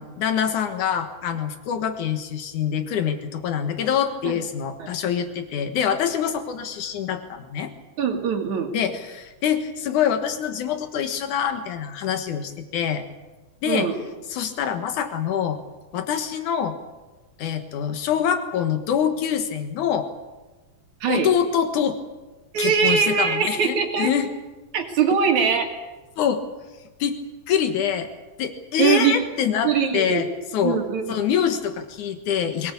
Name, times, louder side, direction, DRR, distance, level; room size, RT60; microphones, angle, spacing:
voice 1, 0.0-7.7 8.7-13.0 13.6-13.9 14.3-15.6 15.9-16.8 17.4-20.1 21.1-22.0 22.6-24.3 26.2-26.4 27.0-27.2 27.5-28.1 28.4-30.3 30.5-30.8 31.1-32.7, left 8 dB, 80° left, 8 dB, 2.9 m, -25 dB
voice 2, 8.0-8.7 13.7-14.0 21.0-21.3 22.5-24.1 24.7-25.7 28.8-29.2 29.6-30.2 30.6-31.2, right 6 dB, 70° right, 4 dB, 3.7 m, -22 dB
22.0 x 19.5 x 8.6 m, 1.2 s
omnidirectional pair, 3.4 m